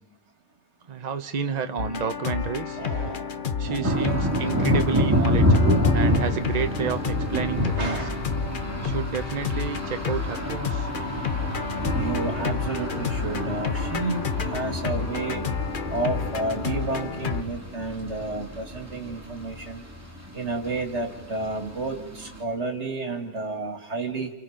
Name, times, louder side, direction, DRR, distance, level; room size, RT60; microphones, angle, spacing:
voice 1, 0.9-2.8 3.6-8.0 8.8-10.9, right 6 dB, 40° right, 8 dB, 1.0 m, -30 dB
sound 1, 1.8-17.4, left 6 dB, 45° left, 1.1 m, -30 dB
voice 2, 2.8-4.2 7.8-8.3 10.7-15.4 15.9-19.8 20.3-24.3, right 3 dB, 70° right, 5 dB, 2.7 m, -31 dB
sound 2, 3.8-22.4, equal, 15° right, 2.7 m, -28 dB
29.5 x 29.0 x 5.1 m, 1.1 s
omnidirectional pair, 1.2 m